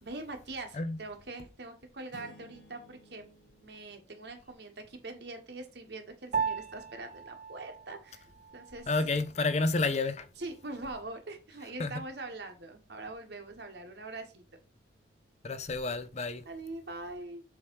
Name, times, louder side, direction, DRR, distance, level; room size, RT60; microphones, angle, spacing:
voice 1, 0.0-3.3 3.6-8.2 8.5-8.9 10.4-14.4 16.4-17.4, right 2 dB, 65° right, 1.4 m, -43 dB
sound 1, 2.1-4.9, equal, 80° left, 1.8 m, -57 dB
Piano, 6.3-15.9, right 6 dB, 45° right, 0.3 m, -41 dB
voice 2, 8.9-10.3 11.8-11.9 15.4-16.4, left 3 dB, 40° left, 0.5 m, -30 dB
7.1 x 3.2 x 4.6 m
head